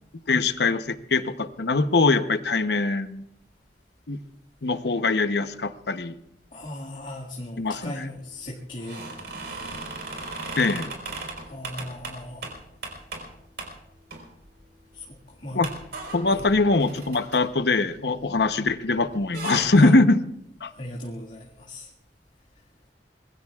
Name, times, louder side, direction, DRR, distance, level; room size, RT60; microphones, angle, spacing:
voice 1, 0.3-3.2 4.1-4.2 4.6-6.1 7.6-8.1 10.6-10.9 15.5-15.7 16.1-20.2 20.6-20.7, left 3 dB, 65° left, 10 dB, 0.9 m, -22 dB
voice 2, 6.5-9.0 11.4-12.5 14.9-15.6 16.2-16.4 19.8-19.9 20.7-21.9, left 1 dB, 50° left, -4 dB, 1.9 m, -37 dB
sound 1, 8.8-13.3 13.6-13.7 14.1-14.6 14.9-15.0 15.6-18.7 19.0-19.7, right 3 dB, 65° right, 4.3 m, -37 dB
25.0 x 21.0 x 2.4 m, 0.77 s
head